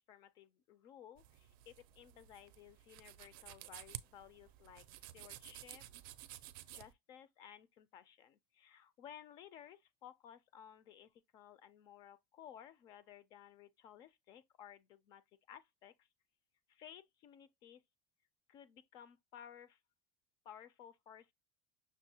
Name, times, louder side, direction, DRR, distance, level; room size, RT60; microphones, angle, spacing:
voice 1, 0.0-4.9 5.1-5.8 6.7-15.2 15.5-16.1 16.7-17.8 18.5-19.8 20.4-21.3, left 9 dB, 35° left, 0.4 m, -57 dB
sound 1, 1.2-6.9, right 14 dB, 75° right, 0.4 m, -53 dB
6.2 x 2.1 x 2.8 m
cardioid pair, 165°, 12 cm